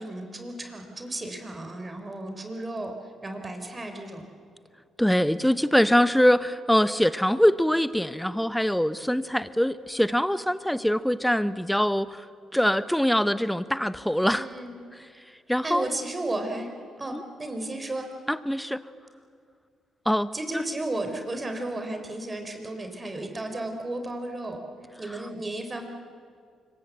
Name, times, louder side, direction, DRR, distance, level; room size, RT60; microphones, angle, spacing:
voice 1, 0.0-3.0 3.2-4.2 14.3-14.7 15.6-16.7 17.0-18.1 20.3-24.6 25.0-25.9, right 2 dB, 25° right, 5 dB, 3.8 m, -33 dB
voice 2, 5.0-12.2 12.5-14.5 14.9-15.0 15.5-15.9 17.1-17.2 18.3-18.8 20.1-20.6, equal, 5° left, 14 dB, 0.9 m, -23 dB
25.5 x 23.0 x 8.2 m, 2.2 s
cardioid pair, 90°, 0 cm